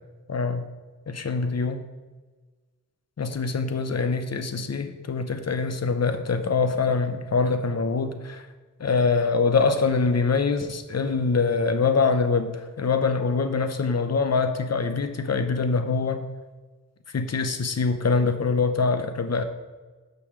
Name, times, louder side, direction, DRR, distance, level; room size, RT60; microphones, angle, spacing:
voice 1, 0.3-0.6 1.1-1.8 3.2-8.5 8.8-16.2 17.1-19.4, left 4 dB, 45° left, 9 dB, 0.8 m, -24 dB
6.2 x 5.7 x 6.4 m, 1.3 s
wide cardioid pair, 85°, 35 cm